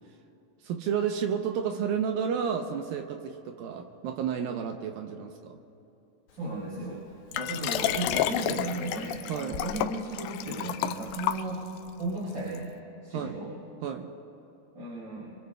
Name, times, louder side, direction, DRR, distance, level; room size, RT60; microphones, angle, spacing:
voice 1, 0.6-5.6 9.3-9.6 13.1-13.4 13.8-14.1, right 7 dB, 75° right, 5 dB, 2.3 m, -31 dB
voice 2, 6.3-11.6 12.0-12.7 13.0-13.5 14.7-15.4, right 2 dB, 30° right, -8 dB, 5.1 m, -35 dB
Liquid, 7.3-11.9 12.5-12.6, left 12 dB, 85° left, 2.1 m, -31 dB
25.5 x 24.5 x 2.3 m, 2.8 s
omnidirectional pair, 4.6 m